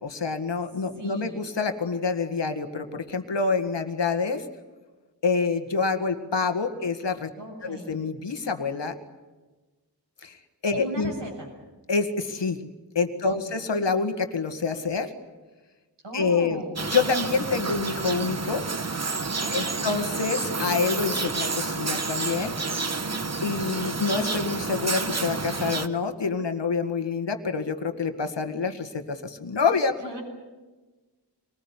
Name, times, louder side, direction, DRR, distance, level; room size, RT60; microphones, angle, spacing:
voice 1, 0.0-4.5 5.2-7.3 7.6-9.0 10.2-10.4 10.6-11.1 11.9-12.6 13.0-15.1 16.1-16.6 16.9-18.6 19.5-22.5 23.4-30.0, left 4 dB, 85° left, 7 dB, 1.9 m, -27 dB
voice 2, 1.0-1.4 7.4-7.9 10.7-11.5 13.3-13.7 16.0-16.8 19.4-20.0 30.0-30.2, right 1 dB, 90° right, -1 dB, 7.6 m, -38 dB
sound 1, 16.8-25.9, right 3 dB, 40° right, 1.3 m, -29 dB
25.5 x 20.0 x 9.9 m, 1.2 s
wide cardioid pair, 60°, 42 cm